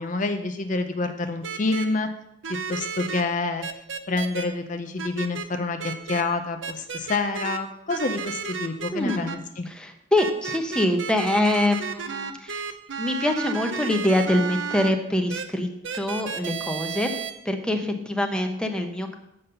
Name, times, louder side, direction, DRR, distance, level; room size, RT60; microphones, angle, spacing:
voice 1, 0.0-2.1 2.7-3.7 4.1-9.7 18.3-18.5, left 3 dB, 45° left, 7 dB, 0.6 m, -28 dB
sound 1, 1.4-1.9 2.4-3.2 3.6-4.4 5.0-5.5 5.8-6.2 6.6-7.6 7.9-9.4 10.2-14.9 15.3-15.4 15.8-17.3, right 6 dB, 85° right, 0.7 m, -32 dB
voice 2, 8.9-9.2 9.7-15.7 15.9-17.2 17.4-19.2, left 1 dB, 5° left, 4 dB, 0.8 m, -25 dB
7.1 x 5.4 x 6.7 m, 0.81 s
head